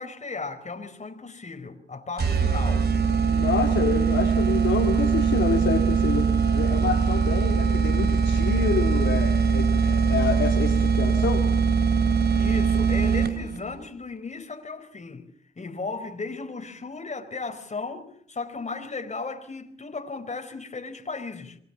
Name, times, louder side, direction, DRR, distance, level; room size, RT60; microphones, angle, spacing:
voice 1, 0.0-2.9 12.4-15.3 15.6-21.6, left 4 dB, 35° left, 4.9 m, -35 dB
sound 1, 2.2-13.6, right 6 dB, 55° right, 3.4 m, -22 dB
voice 2, 3.3-11.5, left 6 dB, 70° left, 3.8 m, -28 dB
28.0 x 22.5 x 7.2 m
cardioid pair, 70°, 21 cm